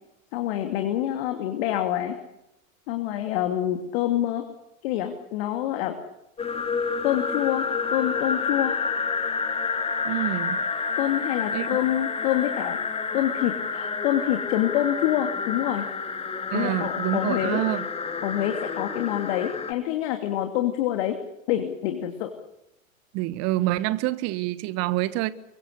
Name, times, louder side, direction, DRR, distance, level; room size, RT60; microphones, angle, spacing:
voice 1, 0.3-2.2 2.9-4.4 4.8-6.0 7.0-8.7 11.0-12.8 13.1-15.9 16.5-17.6 18.2-21.2 21.5-22.3, left 12 dB, 50° left, 2.8 m, -26 dB
sound 1, 6.4-19.7, left 5 dB, 15° left, 2.1 m, -29 dB
voice 2, 10.0-10.6 11.5-11.8 16.5-17.9 23.1-25.3, right 16 dB, 35° right, 1.5 m, -27 dB
23.5 x 23.5 x 6.9 m
figure-of-eight pair, 95°, 41 cm